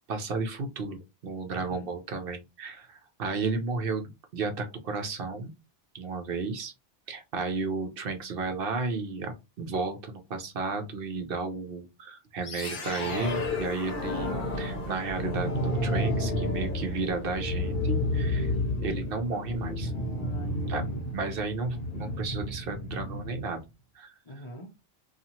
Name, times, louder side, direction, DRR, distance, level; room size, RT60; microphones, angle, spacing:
voice 1, 0.1-5.5 5.9-6.7 7.1-18.5 18.8-19.9 20.7-20.8 21.1-23.6 24.0-24.1, right 4 dB, 65° right, 0.8 m, -33 dB
voice 2, 1.5-1.9 19.8-21.1 24.2-24.8, equal, 35° left, 0.5 m, -44 dB
sound 1, 12.4-23.5, left 1 dB, 55° left, 0.9 m, -31 dB
2.7 x 2.4 x 2.8 m
omnidirectional pair, 1.1 m